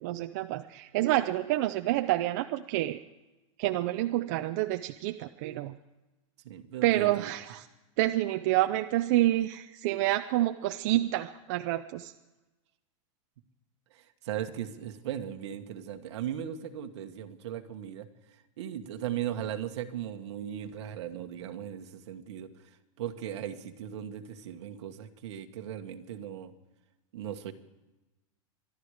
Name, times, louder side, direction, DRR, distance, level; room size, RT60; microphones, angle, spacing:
voice 1, 0.0-3.0 3.6-5.7 6.8-7.6 8.0-12.1, right 15 dB, 35° right, 7 dB, 0.4 m, -28 dB
voice 2, 6.4-7.3 13.9-18.1 18.6-22.5 23.0-26.5 27.1-27.5, right 10 dB, 60° right, 6 dB, 1.4 m, -37 dB
24.5 x 12.0 x 4.9 m, 1.1 s
supercardioid pair, 180°, 17 cm